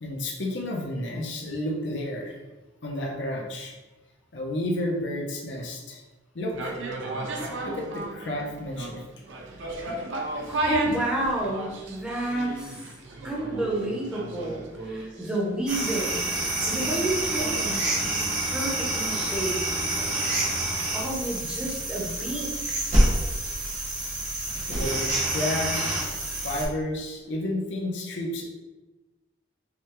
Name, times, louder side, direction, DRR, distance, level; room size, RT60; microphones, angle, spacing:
voice 1, 0.0-2.4 2.8-3.7 4.3-6.0 6.3-6.8 7.6-9.0 24.7-26.0 26.4-28.4, left 1 dB, 70° left, -1 dB, 0.7 m, -31 dB
sound 1, 6.5-24.6 24.9-25.0, right 2 dB, 80° right, 0.6 m, -36 dB
voice 2, 10.5-12.8 13.2-16.3 16.7-17.9 18.5-19.5 20.9-22.8, right 1 dB, 5° right, -4 dB, 0.7 m, -30 dB
sound 2, 15.7-26.7, right 1 dB, 40° right, 1.2 m, -27 dB
4.9 x 2.2 x 3.0 m, 1.1 s
head